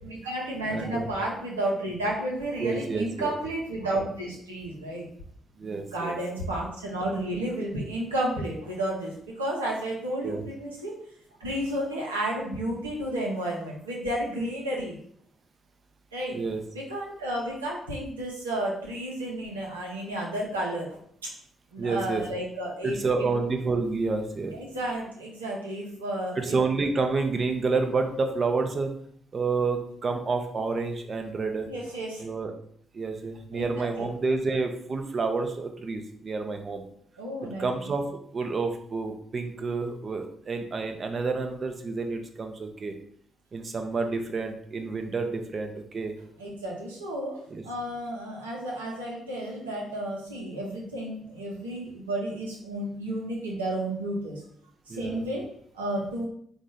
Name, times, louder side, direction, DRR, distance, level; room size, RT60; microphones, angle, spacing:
voice 1, 0.0-5.1 5.6-10.9 11.4-15.0 16.1-16.4 16.7-21.3 21.7-23.3 24.5-26.6 31.7-32.2 33.5-33.9 37.2-37.7 46.4-54.4 54.9-56.3, right 1 dB, 80° right, -3 dB, 1.0 m, -32 dB
voice 2, 0.7-1.1 2.6-3.3 5.6-6.2 10.2-10.4 16.3-16.6 21.8-22.2 22.8-24.6 26.3-28.9 29.3-31.7 32.2-32.5 32.9-36.8 37.6-38.0 38.3-42.9 43.5-46.1 47.5-47.6 54.9-55.3, right 4 dB, 40° right, 5 dB, 0.7 m, -29 dB
5.0 x 2.6 x 3.8 m, 0.63 s
figure-of-eight pair, 40°, 0 cm